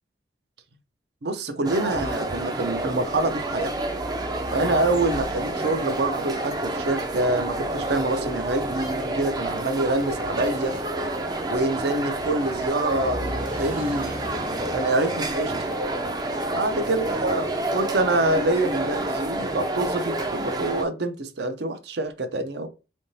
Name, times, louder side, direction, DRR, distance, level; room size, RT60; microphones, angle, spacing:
voice 1, 1.2-3.7 4.5-10.8 11.5-14.2 14.7-15.5 16.5-22.7, right 2 dB, 65° right, 0.7 m, -26 dB
sound 1, 1.6-20.8, right 2 dB, 20° right, 0.4 m, -29 dB
sound 2, 3.0-20.9, equal, 45° right, 1.0 m, -41 dB
3.7 x 3.5 x 2.7 m
head